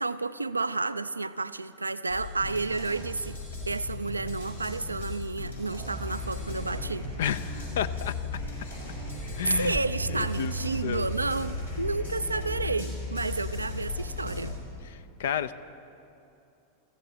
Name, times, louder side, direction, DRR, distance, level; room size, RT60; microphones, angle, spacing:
voice 1, 0.0-3.4 3.7-7.1 9.5-14.6, right 3 dB, 80° right, 14 dB, 0.3 m, -31 dB
sound 1, 2.1-14.5, left 2 dB, 85° left, 4.8 m, -36 dB
sound 2, 6.1-13.5, right 2 dB, ahead, 0.9 m, -45 dB
voice 2, 7.2-8.1 9.3-9.8 10.1-11.1 14.9-15.5, left 10 dB, 60° left, 15 dB, 0.5 m, -32 dB
21.0 x 15.0 x 4.2 m, 2.7 s
figure-of-eight pair, 90°, 0 cm